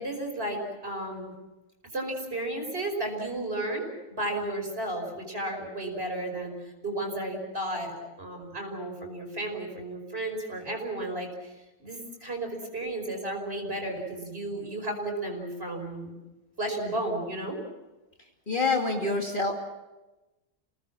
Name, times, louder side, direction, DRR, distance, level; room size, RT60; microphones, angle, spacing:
voice 1, 0.0-1.3 1.9-6.5 6.8-11.5 11.8-16.2 16.6-17.6, right 1 dB, 40° right, 2 dB, 5.6 m, -33 dB
voice 2, 18.5-19.5, left 3 dB, 30° left, 0 dB, 2.6 m, -26 dB
29.5 x 18.5 x 7.4 m, 1.1 s
omnidirectional pair, 1.6 m